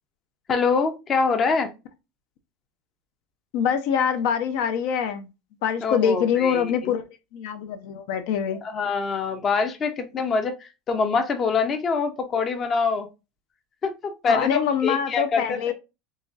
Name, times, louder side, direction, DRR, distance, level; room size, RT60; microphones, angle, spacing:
voice 1, 0.5-1.7 5.8-6.9 8.6-13.1 13.8-15.7, left 5 dB, 30° left, 0.6 m, -25 dB
voice 2, 3.5-5.3 5.6-7.0 7.3-8.6 14.3-15.7, left 7 dB, 70° left, 0.7 m, -24 dB
4.0 x 3.0 x 2.4 m
supercardioid pair, 145°, 0 cm